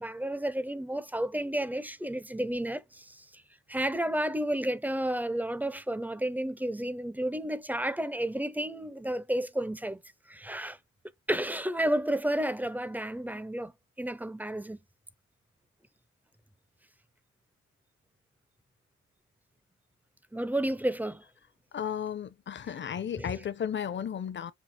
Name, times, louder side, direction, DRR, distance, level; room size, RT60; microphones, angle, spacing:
voice 1, 0.0-3.4 3.7-10.0 10.3-10.8 11.3-13.7 14.0-14.8 20.3-21.2 23.2-23.3, right 1 dB, 5° right, 0.5 m, -31 dB
voice 2, 21.7-24.5, left 8 dB, 40° left, 0.7 m, -34 dB
5.8 x 2.0 x 4.2 m
cardioid pair, 90°, 30 cm